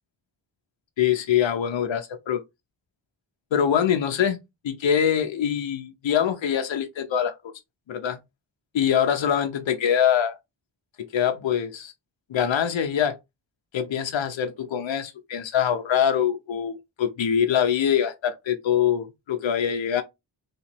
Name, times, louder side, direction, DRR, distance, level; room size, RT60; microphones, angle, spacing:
voice 1, 1.0-2.4 3.5-4.4 4.6-7.3 7.9-8.2 8.7-10.3 11.0-11.9 12.3-13.2 13.7-20.0, left 8 dB, 80° left, 0.7 m, -24 dB
3.1 x 3.0 x 4.3 m
wide cardioid pair, 105°, 45 cm